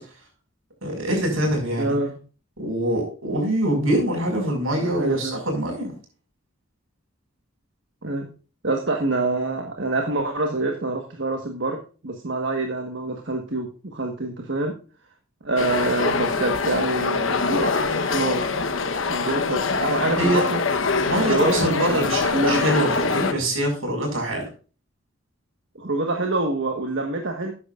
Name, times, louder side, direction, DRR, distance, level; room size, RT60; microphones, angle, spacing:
voice 1, 0.8-2.0 2.6-5.9 20.2-20.4 21.1-24.5, right 1 dB, 80° right, 2 dB, 5.5 m, -24 dB
voice 2, 1.8-2.2 4.8-5.4 8.0-8.3 8.6-14.7 15.4-17.7 18.1-18.5 19.1-20.6 21.1-22.7 25.7-27.5, right 2 dB, 60° right, 3 dB, 1.5 m, -26 dB
sound 1, 15.6-23.3, left 4 dB, 65° left, 1.1 m, -24 dB
13.0 x 9.8 x 2.5 m, 0.36 s
head